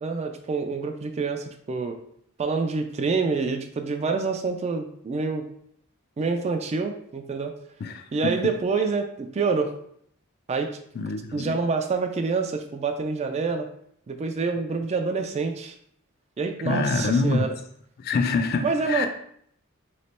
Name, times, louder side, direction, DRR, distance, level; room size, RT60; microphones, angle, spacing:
voice 1, 0.0-2.0 2.4-5.4 6.2-7.5 8.1-9.7 10.5-10.7 11.3-13.7 14.1-15.8 16.4-17.5 18.6-19.1, right 4 dB, 30° right, 6 dB, 0.3 m, -27 dB
voice 2, 7.8-8.3 11.0-11.6 16.6-17.5 18.0-19.1, left 3 dB, 45° left, 7 dB, 0.4 m, -25 dB
3.2 x 2.9 x 4.2 m, 0.67 s
head